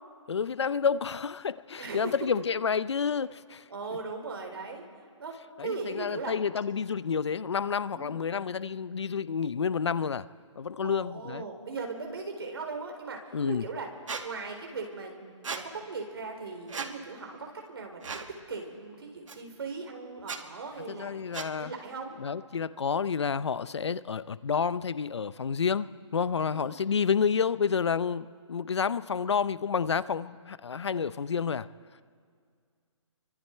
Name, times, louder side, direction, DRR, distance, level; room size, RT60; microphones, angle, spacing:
voice 1, 0.3-3.6 5.6-10.3 10.6-11.5 13.3-13.6 20.9-21.7 22.2-31.7, left 6 dB, 60° left, 17 dB, 0.7 m, -29 dB
voice 2, 1.8-2.1 3.7-4.9 5.2-6.4 7.9-8.2 10.8-13.9 14.2-21.2 21.5-22.2 26.5-26.7, right 4 dB, 50° right, 3 dB, 4.1 m, -39 dB
Squeak, 14.1-14.2 15.4-15.6 16.7-16.9 18.0-18.3 19.3-19.4 20.2-20.4 21.3-21.5, right 5 dB, 90° right, 2.1 m, -35 dB
29.0 x 24.5 x 4.5 m, 2.1 s
hypercardioid pair, 180°, 16 cm